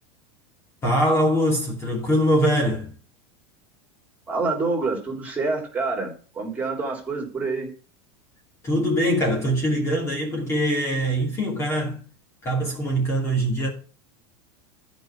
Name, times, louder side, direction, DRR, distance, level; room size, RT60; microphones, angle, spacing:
voice 1, 0.8-2.9 8.6-12.0 12.4-13.7, equal, 20° left, 2.5 m, -23 dB
voice 2, 4.3-7.7, right 3 dB, 10° right, 3.4 m, -27 dB
13.0 x 5.4 x 4.7 m
supercardioid pair, 160°, 14 cm